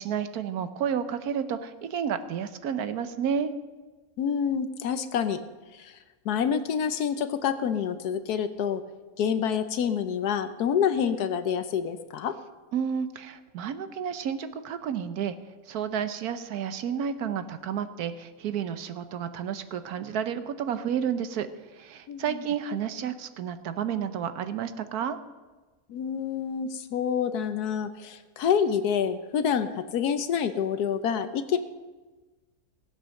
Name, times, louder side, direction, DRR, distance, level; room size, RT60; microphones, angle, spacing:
voice 1, 0.0-3.5 12.7-15.3 15.7-25.2, right 8 dB, 75° right, 11 dB, 1.3 m, -31 dB
voice 2, 4.2-5.4 5.7-5.9 6.2-8.8 9.2-12.3 22.1-22.4 25.9-31.6, left 7 dB, 85° left, 10 dB, 1.3 m, -27 dB
16.5 x 8.1 x 6.5 m, 1.3 s
omnidirectional pair, 1.6 m